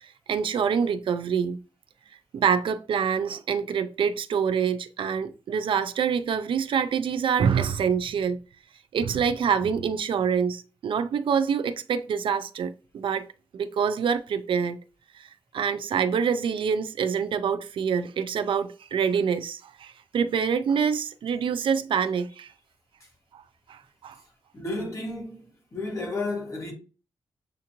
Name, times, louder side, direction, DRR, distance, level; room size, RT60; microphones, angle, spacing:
voice 1, 0.0-1.6 2.3-8.4 8.9-13.3 13.5-14.8 15.1-22.5 23.3-23.4 23.7-24.2, right 7 dB, 70° right, 0.4 m, -26 dB
voice 2, 24.5-26.7, left 2 dB, 30° left, 1.6 m, -32 dB
7.0 x 2.5 x 2.9 m
cardioid pair, 100°, 9 cm